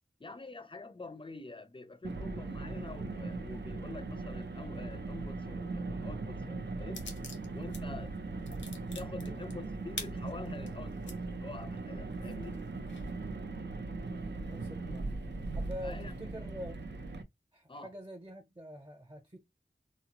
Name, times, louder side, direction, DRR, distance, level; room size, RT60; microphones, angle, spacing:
voice 1, 0.2-7.1 7.5-8.1 8.9-12.6 15.8-16.1 17.7-17.9, left 3 dB, 25° left, 0.5 m, -46 dB
Car, 2.0-17.2, right 3 dB, 70° right, 0.5 m, -39 dB
sound 1, 6.9-7.8 8.1-11.2 11.7-11.8 12.2-13.1, left 3 dB, 85° left, 0.7 m, -45 dB
voice 2, 14.5-15.1 15.5-16.9 17.5-19.4, equal, 25° right, 0.8 m, -45 dB
3.7 x 2.0 x 2.9 m
wide cardioid pair, 45°, 19 cm